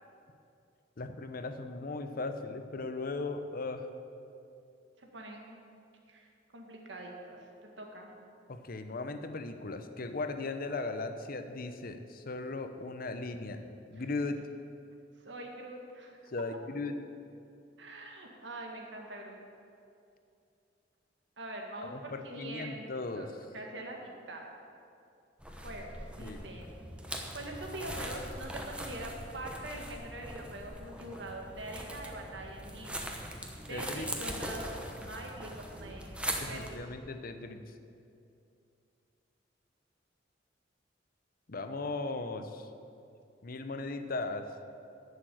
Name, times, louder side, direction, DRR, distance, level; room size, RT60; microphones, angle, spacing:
voice 1, 1.0-3.9 8.5-13.6 13.9-14.4 16.3-17.0 21.9-23.3 26.2-26.5 33.7-34.1 36.4-37.6 41.5-42.7 43.4-44.5, left 3 dB, 50° left, 8 dB, 0.8 m, -37 dB
voice 2, 5.0-5.6 6.1-6.3 6.5-8.1 15.2-16.2 17.8-19.4 21.4-24.5 25.6-26.7 27.3-33.2 33.7-36.8, right 1 dB, 70° right, 1 dB, 1.8 m, -44 dB
sound 1, 25.4-36.8, right 1 dB, 5° right, 1.0 m, -41 dB
11.0 x 6.9 x 7.8 m, 2.6 s
head